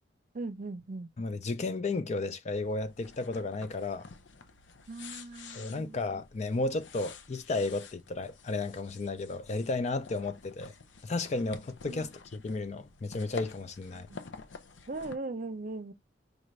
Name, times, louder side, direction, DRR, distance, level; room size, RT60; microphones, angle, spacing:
voice 1, 0.3-1.1 4.9-6.0 11.9-12.1 13.9-14.2 14.9-15.9, right 2 dB, 50° right, 0.6 m, -39 dB
voice 2, 1.2-4.1 5.5-10.7 11.0-14.1, left 3 dB, 40° left, 0.4 m, -33 dB
sound 1, 2.5-15.2, left 5 dB, 90° left, 0.6 m, -50 dB
5.0 x 2.5 x 3.1 m
head